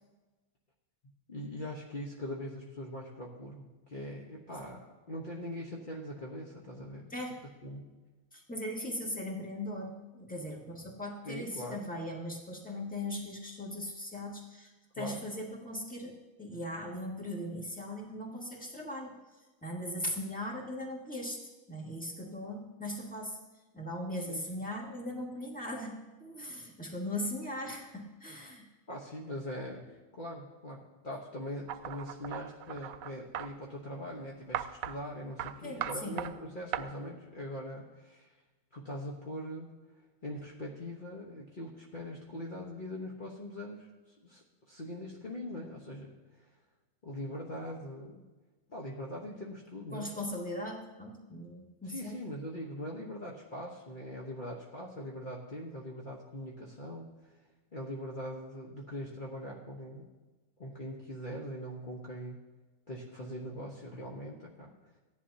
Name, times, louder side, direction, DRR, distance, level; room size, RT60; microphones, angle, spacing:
voice 1, 1.3-7.1 7.6-7.8 11.2-11.9 15.0-15.2 24.3-24.5 28.9-38.3 38.7-39.7 40.2-43.9 44.2-46.5 47.0-48.2 48.7-50.1 51.9-57.1 57.7-60.1 60.6-62.4 62.9-64.7, equal, 40° left, -3 dB, 1.3 m, -42 dB
voice 2, 7.1-7.4 8.3-19.2 19.6-21.4 21.7-23.4 23.7-28.6 35.6-36.2 49.9-52.2, left 1 dB, 5° left, -2 dB, 1.9 m, -39 dB
sound 1, 31.7-33.5 34.5-35.0 35.4-35.5 35.8-36.3 36.7-36.8, right 11 dB, 90° right, 1.0 m, -37 dB
17.0 x 11.0 x 2.8 m, 1.2 s
omnidirectional pair, 1.4 m